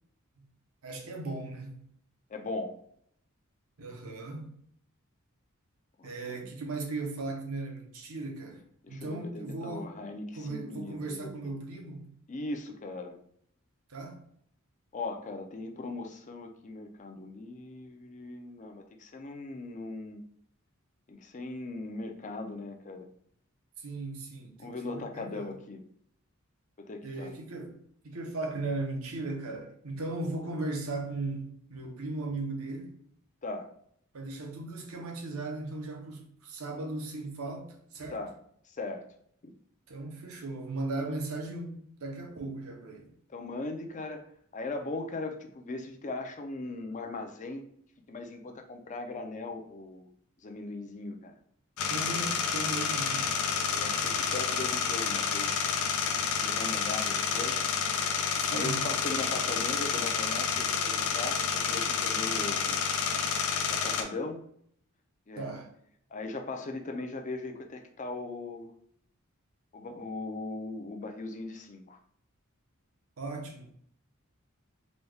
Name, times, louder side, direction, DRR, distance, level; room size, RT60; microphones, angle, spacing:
voice 1, 0.8-1.8 3.8-4.5 6.0-9.9 10.4-12.1 13.9-14.2 23.8-25.5 27.0-27.8 28.0-32.9 34.1-38.2 39.9-43.1 51.9-53.3 58.4-58.9 65.4-65.7 73.2-73.7, right 2 dB, 85° right, 0.8 m, -37 dB
voice 2, 2.3-2.8 6.0-6.5 8.8-11.5 12.3-13.2 14.9-20.2 21.1-23.1 24.6-25.8 26.8-27.3 33.4-33.7 38.1-38.3 38.7-39.0 39.4-39.5 43.3-44.2 44.5-47.6 48.1-50.1 50.4-51.3 53.7-55.5 56.4-57.7 58.5-62.9 63.7-64.4 65.3-65.4 66.1-68.7 69.7-72.0, left 2 dB, 35° left, 0.5 m, -39 dB
sound 1, 51.8-64.0, left 6 dB, 85° left, 0.5 m, -29 dB
4.1 x 2.3 x 3.2 m
head